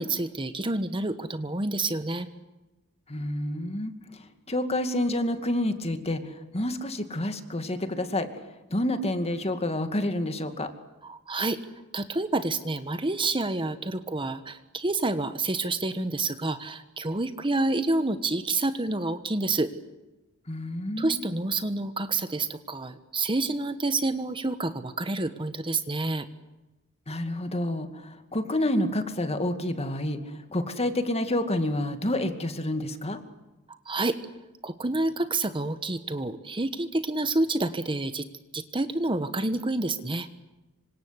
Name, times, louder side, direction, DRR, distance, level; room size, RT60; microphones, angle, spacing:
voice 1, 0.0-2.3 11.0-11.6 11.9-19.7 21.0-26.3 33.8-34.2 34.6-38.3 38.5-40.3, right 2 dB, 25° right, 10 dB, 1.3 m, -28 dB
voice 2, 3.1-8.3 8.7-10.7 20.5-21.2 27.1-33.2, left 1 dB, 30° left, 8 dB, 2.3 m, -29 dB
27.0 x 25.5 x 8.2 m, 1.1 s
head